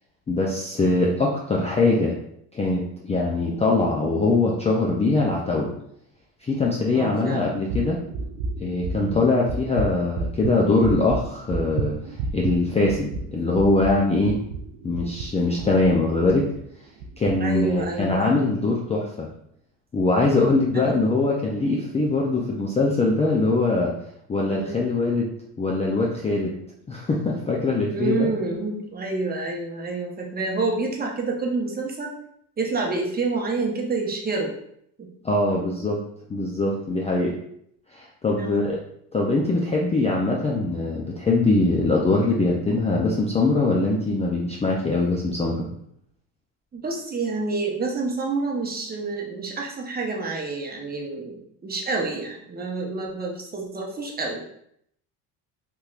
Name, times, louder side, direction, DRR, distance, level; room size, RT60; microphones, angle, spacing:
voice 1, 0.3-2.2 2.5-5.7 6.4-8.0 8.6-12.0 12.3-14.4 14.8-16.5 17.2-19.3 19.9-23.9 24.3-25.3 25.6-26.5 26.9-28.3 35.2-36.0 36.3-37.3 37.9-38.8 39.1-45.7, left 2 dB, 15° left, -2 dB, 0.4 m, -22 dB
voice 2, 6.9-7.7 8.9-9.3 17.4-18.4 20.7-20.9 24.4-24.8 27.9-32.1 32.6-34.5 35.0-35.1 38.4-38.7 46.7-54.4, right 3 dB, 25° right, 0 dB, 0.7 m, -28 dB
sound 1, 7.7-16.6 17.0-17.3 17.7-18.0, right 3 dB, 85° right, 0.5 m, -31 dB
3.5 x 2.9 x 2.4 m, 0.71 s
supercardioid pair, 100°, 41 cm